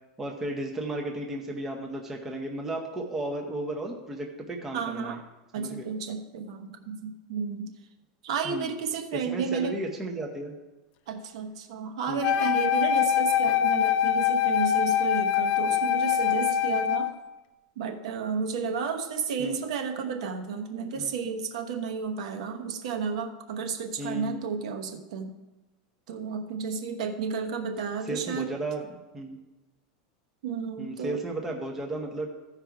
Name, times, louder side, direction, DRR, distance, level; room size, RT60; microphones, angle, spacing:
voice 1, 0.2-5.2 5.6-5.9 8.4-8.8 9.1-10.6 12.1-12.3 19.4-19.6 21.0-21.1 24.0-24.4 28.0-28.9 29.1-29.4 30.8-32.3, right 1 dB, 10° right, 1 dB, 0.7 m, -34 dB
voice 2, 4.7-5.2 5.5-7.7 8.2-9.8 11.1-17.1 17.8-25.4 26.1-28.6 30.4-31.2, right 6 dB, 60° right, 4 dB, 1.1 m, -32 dB
Wind instrument woodwind instrument, 12.2-17.1, left 10 dB, 35° left, 0.4 m, -24 dB
14.5 x 5.0 x 4.6 m, 1.1 s
supercardioid pair, 180°, 4 cm